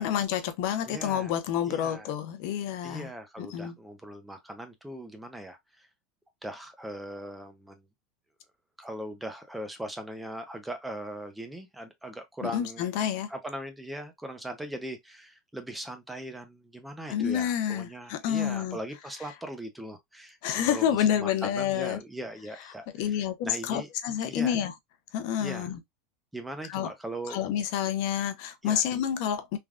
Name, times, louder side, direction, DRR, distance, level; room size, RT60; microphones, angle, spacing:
voice 1, 0.0-3.1 3.4-3.7 12.4-13.3 17.1-18.8 20.4-22.0 23.0-24.7 25.1-25.8 26.7-26.9 27.3-29.6, left 9 dB, 60° left, 0.5 m, -29 dB
voice 2, 0.9-1.3 1.7-2.1 2.8-5.9 6.4-7.9 8.8-12.9 13.3-23.9 24.3-24.6 25.4-25.7 26.3-27.4 28.6-28.8, right 1 dB, 5° right, 0.5 m, -40 dB
3.3 x 2.2 x 2.4 m
supercardioid pair, 155°, 0 cm